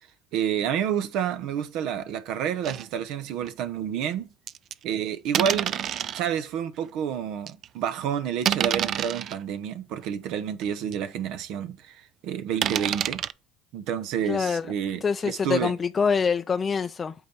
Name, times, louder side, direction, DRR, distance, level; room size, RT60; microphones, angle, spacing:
voice 1, 0.3-4.3 4.8-5.7 6.1-13.2 13.7-15.7, right 8 dB, 70° right, 0.9 m, -29 dB
sound 1, 2.6-2.9 3.4-3.5 4.5-4.7 5.3-6.2 6.9-7.0 7.5-7.7 8.4-9.4 10.0-10.1 10.6-10.7 10.9-11.0 12.6-13.3, right 10 dB, 50° right, 0.4 m, -27 dB
voice 2, 14.3-14.7 15.0-17.1, left 5 dB, 30° left, 0.4 m, -25 dB
8.4 x 4.0 x 4.5 m
supercardioid pair, 95°, 0 cm